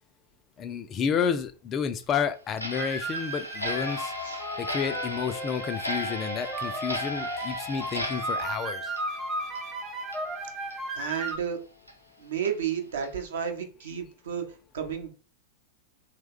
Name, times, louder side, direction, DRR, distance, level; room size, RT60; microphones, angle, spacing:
voice 1, 0.6-4.1 4.6-8.8, left 7 dB, 30° left, 0.3 m, -30 dB
Clock, 2.6-9.8 10.1-10.2 10.7-10.8 11.3-11.4 11.9-12.0 12.4-12.5 13.0-13.2, left 2 dB, 90° left, 0.5 m, -36 dB
sound 1, 2.8-11.4, right 2 dB, 15° right, 0.7 m, -35 dB
voice 2, 10.9-11.6 12.2-15.1, right 8 dB, 60° right, 0.7 m, -32 dB
2.9 x 2.2 x 3.5 m
figure-of-eight pair, 90°, 0 cm